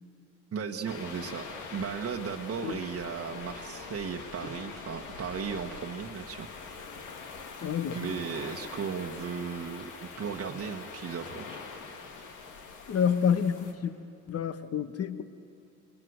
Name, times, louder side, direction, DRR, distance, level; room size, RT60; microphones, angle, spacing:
voice 1, 0.5-1.4 1.7-6.5 7.9-9.9 10.2-11.6, right 6 dB, 50° right, 2 dB, 1.3 m, -36 dB
sound 1, 0.8-13.7, left 4 dB, 85° left, 2.5 m, -43 dB
voice 2, 7.6-8.0 12.9-13.9 14.3-15.2, left 7 dB, 50° left, 10 dB, 1.4 m, -28 dB
27.5 x 22.0 x 8.1 m, 2.9 s
cardioid pair, 90°, 30 cm